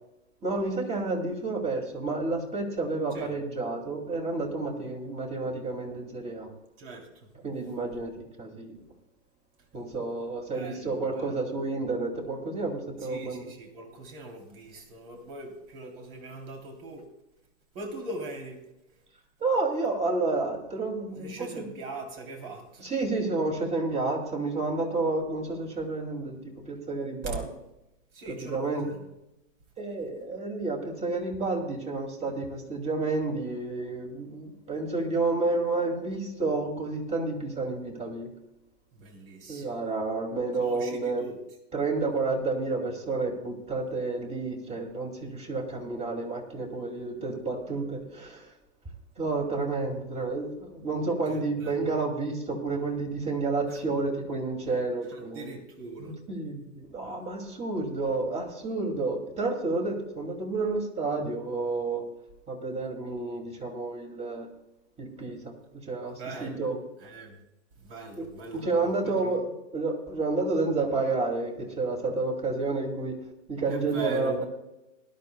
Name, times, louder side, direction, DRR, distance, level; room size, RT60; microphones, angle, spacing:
voice 1, 0.4-6.5 7.4-8.1 8.4-8.8 9.7-13.4 19.4-21.7 22.8-27.4 28.5-28.9 29.8-38.3 39.5-41.2 41.7-48.4 49.2-55.5 56.0-62.1 62.5-64.5 65.0-65.5 65.9-66.8 68.2-68.3 68.6-73.2 73.5-74.4, right 3 dB, 15° right, 3 dB, 2.4 m, -30 dB
voice 2, 6.8-7.3 10.5-11.4 13.0-17.1 17.7-18.6 21.1-22.9 27.2-27.4 28.1-29.1 38.9-39.7 40.6-41.4 51.3-51.9 53.7-53.8 55.1-56.1 66.2-66.7 67.0-67.4 67.7-69.3 73.7-74.5, right 3 dB, 50° right, 2 dB, 3.1 m, -41 dB
20.0 x 11.5 x 2.2 m, 0.91 s
hypercardioid pair, 125°, 38 cm